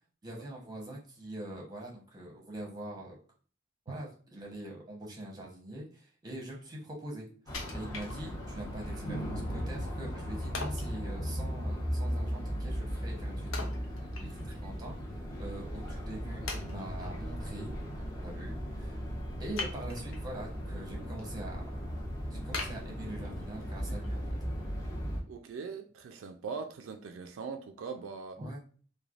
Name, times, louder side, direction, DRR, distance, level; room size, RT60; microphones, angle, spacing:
voice 1, 0.2-3.2 3.9-7.3 7.7-13.7 14.2-17.7 18.2-19.0 19.4-21.9 22.3-24.2 28.4-28.6, right 1 dB, 20° right, 0.8 m, -43 dB
Wood, 7.5-8.7 9.1-9.2 10.5-11.0 13.5-14.6 15.0-15.1 15.8-15.9 16.5-17.1 19.5-20.3 20.8-21.2 21.6-21.7 22.5-23.6 24.0-24.1, left 3 dB, 80° left, 0.6 m, -41 dB
sound 1, 7.5-25.2, equal, 20° left, 0.8 m, -37 dB
voice 2, 25.3-28.4, right 5 dB, 80° right, 0.3 m, -41 dB
3.1 x 2.2 x 2.4 m
head